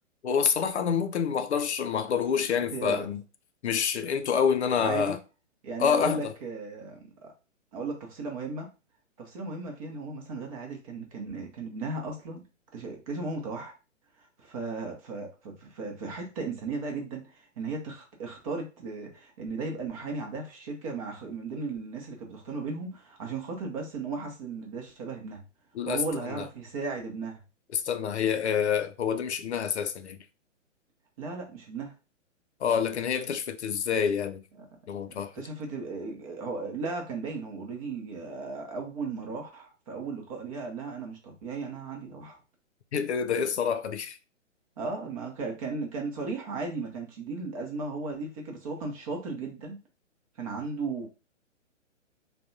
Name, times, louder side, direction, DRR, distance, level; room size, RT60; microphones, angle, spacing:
voice 1, 0.2-3.2 3.6-5.2 5.8-6.3 25.7-26.5 27.7-30.2 32.6-34.4 34.9-35.3 42.9-44.2, left 7 dB, 60° left, 0.5 m, -27 dB
voice 2, 2.5-3.1 4.7-5.2 5.6-7.3 7.7-8.7 9.2-12.4 12.7-13.7 14.2-25.4 25.9-27.4 31.2-31.9 34.6-34.7 35.1-42.4 44.8-49.8 50.4-51.1, right 3 dB, 30° right, 0.7 m, -36 dB
3.4 x 2.2 x 2.6 m
figure-of-eight pair, 125°, 38 cm